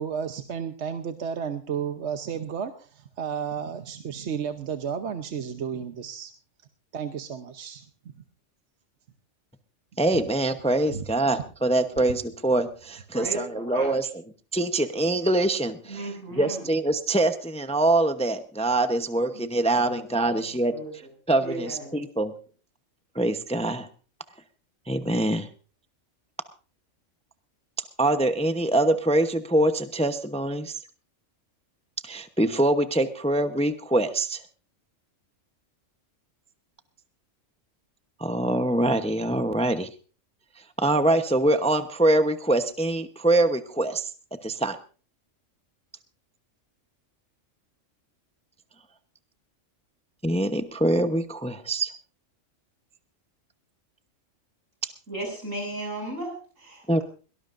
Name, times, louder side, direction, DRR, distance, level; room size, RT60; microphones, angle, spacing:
voice 1, 0.0-6.3 6.9-7.9 10.9-11.0, right 7 dB, 65° right, 7 dB, 1.2 m, -32 dB
voice 2, 10.0-14.1 14.5-20.7 21.3-22.3 23.1-23.9 24.9-25.5 28.0-30.8 32.0-34.4 38.2-39.9 40.8-44.1 44.4-44.8 50.2-51.9 56.9-57.0, right 1 dB, 5° left, 8 dB, 0.8 m, -24 dB
voice 3, 13.1-14.0 15.9-16.7 19.7-20.9 21.4-22.0 55.1-57.0, right 1 dB, 80° right, 2 dB, 7.3 m, -36 dB
22.0 x 18.5 x 2.6 m, 0.38 s
omnidirectional pair, 1.3 m